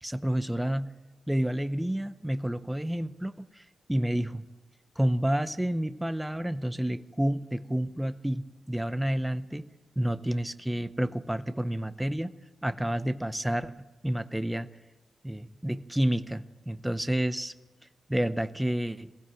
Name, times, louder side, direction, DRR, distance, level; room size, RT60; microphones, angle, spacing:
voice 1, 0.0-0.9 1.3-3.6 3.9-4.4 5.0-9.7 10.0-12.3 12.6-13.7 14.0-14.7 15.2-17.5 18.1-19.1, right 1 dB, 5° right, 12 dB, 0.7 m, -29 dB
21.5 x 15.5 x 7.6 m, 1.2 s
wide cardioid pair, 150°, 0 cm